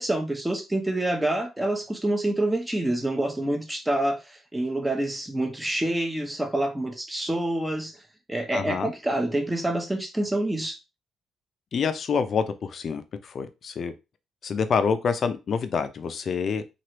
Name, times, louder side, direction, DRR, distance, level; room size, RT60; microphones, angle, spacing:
voice 1, 0.0-7.9 8.3-10.8, right 1 dB, 10° right, 0.7 m, -27 dB
voice 2, 8.5-8.9 11.7-13.9 14.4-16.6, left 6 dB, 55° left, 0.4 m, -27 dB
3.1 x 2.5 x 2.9 m
cardioid pair, 90°, 0 cm